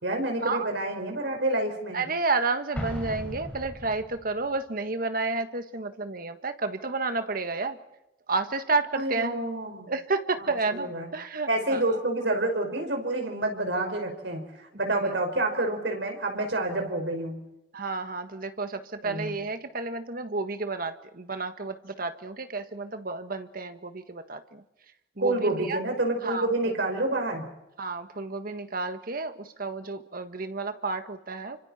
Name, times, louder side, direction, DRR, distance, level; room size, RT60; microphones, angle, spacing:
voice 1, 0.0-2.1 8.9-9.9 10.4-11.1 11.5-17.4 19.0-19.3 25.2-27.5, right 2 dB, 75° right, 4 dB, 5.4 m, -28 dB
voice 2, 1.9-7.8 8.3-9.4 9.9-11.8 14.9-15.1 17.7-24.6 25.2-25.8 26.2-26.5 27.8-31.6, right 3 dB, 55° right, 8 dB, 1.7 m, -31 dB
Explosion, 2.7-4.4, equal, 10° left, 6.1 m, -36 dB
29.5 x 25.5 x 4.4 m, 0.91 s
head